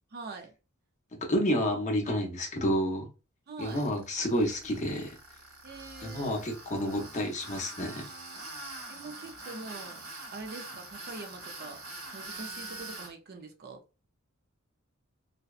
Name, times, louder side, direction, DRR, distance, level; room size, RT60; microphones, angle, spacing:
voice 1, 0.1-0.5 3.5-3.8 5.6-6.4 8.9-10.0 10.3-11.8 12.1-13.8, right 3 dB, 45° right, 0.5 m, -44 dB
voice 2, 1.1-3.1 3.6-5.2 6.0-8.1, equal, 35° left, 0.7 m, -30 dB
Tools, 3.6-13.1, right 2 dB, 80° right, 1.5 m, -44 dB
2.6 x 2.1 x 2.4 m
head